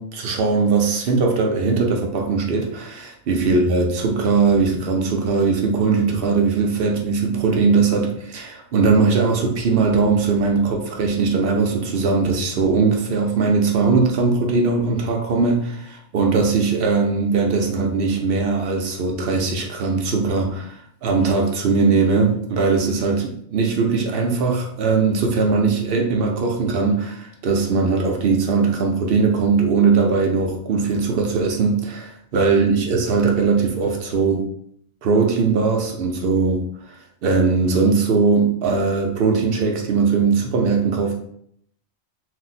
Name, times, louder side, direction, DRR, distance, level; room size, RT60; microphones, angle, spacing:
voice 1, 0.0-34.5 35.0-36.7 37.2-41.1, right 4 dB, 65° right, 1 dB, 0.6 m, -20 dB
2.5 x 2.1 x 3.9 m, 0.67 s
omnidirectional pair, 1.4 m